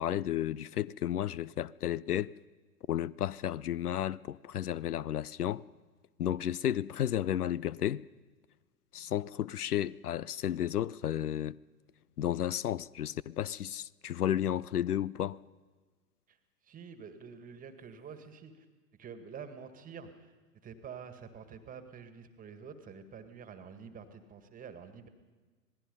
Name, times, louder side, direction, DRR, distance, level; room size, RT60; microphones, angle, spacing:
voice 1, 0.0-2.3 2.9-5.6 6.2-8.0 8.9-11.6 12.2-15.4, left 11 dB, 70° left, 0.6 m, -32 dB
voice 2, 16.6-18.6 19.0-20.3 20.6-25.1, right 6 dB, 15° right, 1.7 m, -48 dB
26.5 x 19.0 x 5.4 m
figure-of-eight pair, 105°, 48 cm